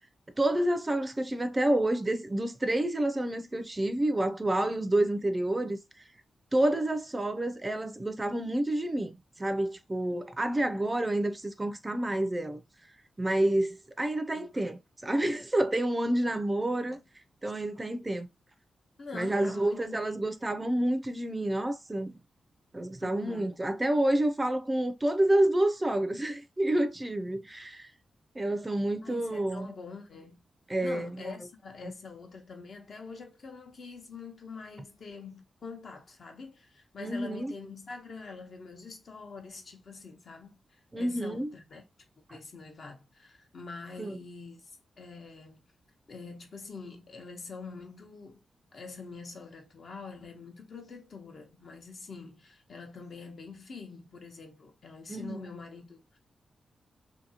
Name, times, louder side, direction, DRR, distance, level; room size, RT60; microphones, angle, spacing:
voice 1, 0.4-5.8 6.5-12.6 13.2-17.0 17.4-18.3 19.1-22.1 22.7-27.9 28.4-29.7 30.7-31.1 37.0-37.5 40.9-41.5 44.0-44.2 55.1-55.4, right 1 dB, 20° right, 0.4 m, -29 dB
voice 2, 10.5-10.8 14.3-14.5 16.8-17.0 19.0-20.2 23.0-23.6 29.0-30.4 30.8-41.8 42.3-45.6 46.1-48.4 48.7-56.2, left 4 dB, 60° left, 0.9 m, -45 dB
2.7 x 2.7 x 2.7 m
cardioid pair, 90°, 0 cm